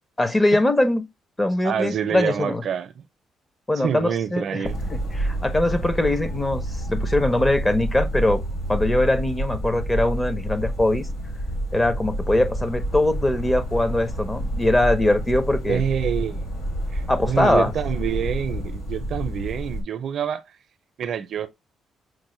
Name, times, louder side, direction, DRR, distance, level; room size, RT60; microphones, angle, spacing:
voice 1, 0.2-1.1 1.4-2.6 3.7-8.4 8.7-11.1 11.7-15.8 17.1-17.7, left 1 dB, 20° left, 0.7 m, -22 dB
voice 2, 1.6-3.0 3.8-4.8 15.7-16.4 16.9-20.4 21.0-21.5, right 8 dB, 65° right, 0.5 m, -27 dB
sound 1, 4.6-19.8, right 1 dB, 85° left, 1.6 m, -29 dB
6.0 x 2.1 x 3.0 m
cardioid pair, 90°, 0 cm